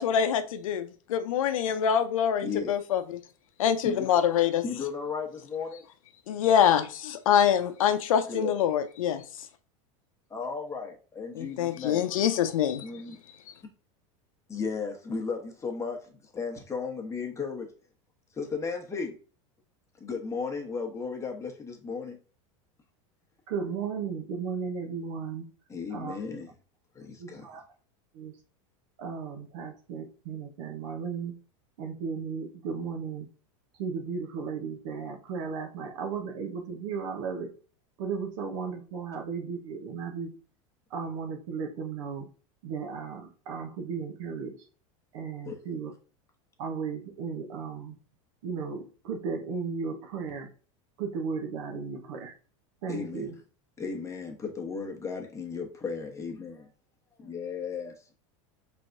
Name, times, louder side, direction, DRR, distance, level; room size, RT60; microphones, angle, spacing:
voice 1, 0.0-3.2 3.6-4.6 6.3-9.2 11.3-12.8, left 9 dB, 90° left, 0.6 m, -25 dB
voice 2, 2.4-2.7 3.8-4.1 4.6-5.8 8.3-8.5 10.3-12.1 12.8-13.2 14.5-17.7 18.3-19.1 20.0-22.2 25.7-26.5 26.9-27.4 45.5-45.6 52.9-53.3 53.8-56.6 57.2-58.1, left 5 dB, 15° left, 1.1 m, -35 dB
voice 3, 23.5-25.5 25.9-26.2 27.2-27.6 28.1-28.3 29.0-31.3 31.8-33.3 33.8-37.5 38.0-40.3 40.9-42.3 42.6-44.6 45.1-45.9 46.6-47.9 48.4-50.5 51.0-52.3 52.8-53.3, right 5 dB, 75° right, 1.1 m, -35 dB
4.6 x 3.4 x 2.6 m
supercardioid pair, 120°, 17 cm